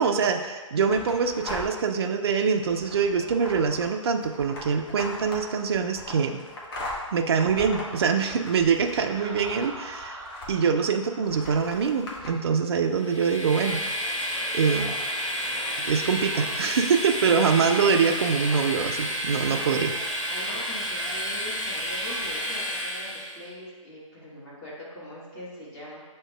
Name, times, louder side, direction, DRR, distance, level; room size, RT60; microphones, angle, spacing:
voice 1, 0.0-6.4 7.1-10.2 10.5-13.8 14.5-15.0 15.8-19.9, right 6 dB, 50° right, 5 dB, 0.4 m, -24 dB
sound 1, 0.9-1.9 2.4-10.8 11.2-12.3, left 1 dB, 45° left, 0.9 m, -39 dB
Laughter, 9.1-12.8, right 1 dB, 25° right, 0.8 m, -44 dB
Train, 13.0-23.4, equal, 65° left, 1.0 m, -30 dB
voice 2, 20.3-26.0, left 1 dB, 25° left, -7 dB, 1.5 m, -42 dB
7.3 x 2.8 x 2.3 m, 1.3 s
figure-of-eight pair, 125°, 17 cm